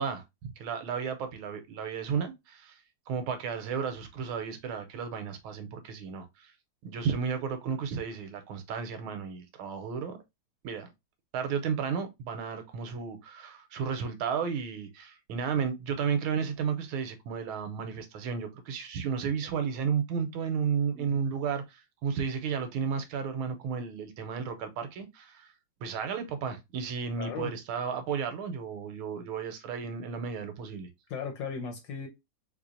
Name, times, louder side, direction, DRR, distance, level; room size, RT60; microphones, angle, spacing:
voice 1, 0.0-2.8 3.1-6.5 6.8-10.2 10.6-10.9 11.3-25.5 25.8-30.9, right 6 dB, 80° right, 1.4 m, -33 dB
voice 2, 27.2-27.5 31.1-32.1, left 6 dB, 70° left, 1.3 m, -37 dB
3.3 x 3.2 x 2.5 m
omnidirectional pair, 2.4 m